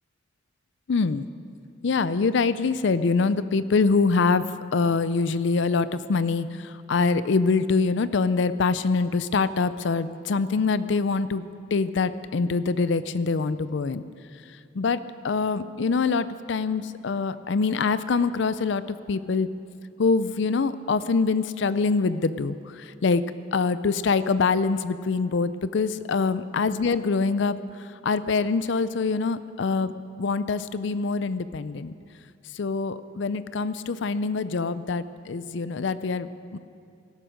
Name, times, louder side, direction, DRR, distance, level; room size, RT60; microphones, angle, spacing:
voice 1, 0.9-1.3 1.8-11.5 11.7-14.0 14.7-15.0 15.2-18.8 19.1-19.5 20.0-23.2 23.5-29.9 30.2-31.9 32.5-36.6, left 4 dB, 65° left, 14 dB, 0.5 m, -24 dB
18.5 x 12.5 x 5.1 m, 2.5 s
head